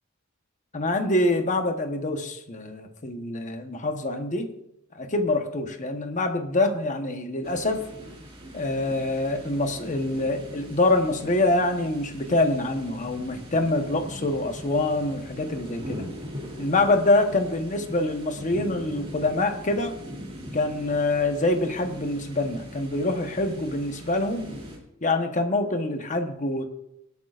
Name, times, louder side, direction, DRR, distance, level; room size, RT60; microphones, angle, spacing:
voice 1, 0.7-4.5 4.9-7.9 8.5-16.1 16.6-20.0 20.5-24.5 25.0-26.6, left 2 dB, 40° left, 6 dB, 1.1 m, -25 dB
sound 1, 7.4-24.8, equal, 30° right, 2.8 m, -41 dB
25.0 x 8.4 x 2.5 m, 0.82 s
head